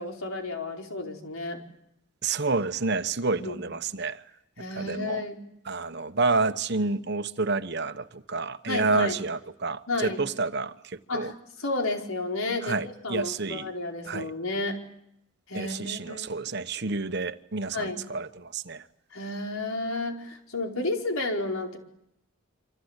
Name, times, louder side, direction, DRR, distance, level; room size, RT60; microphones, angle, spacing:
voice 1, 0.0-1.6 3.4-3.6 4.6-5.4 8.7-9.2 9.9-10.2 11.1-11.3 11.6-14.8 15.5-16.3 17.7-18.1 19.1-21.8, left 2 dB, 85° left, 4.7 m, -31 dB
voice 2, 2.2-4.2 4.6-5.2 5.6-11.3 12.6-13.7 14.0-14.3 15.5-18.8, right 3 dB, 50° right, 1.2 m, -29 dB
28.0 x 26.0 x 8.2 m
head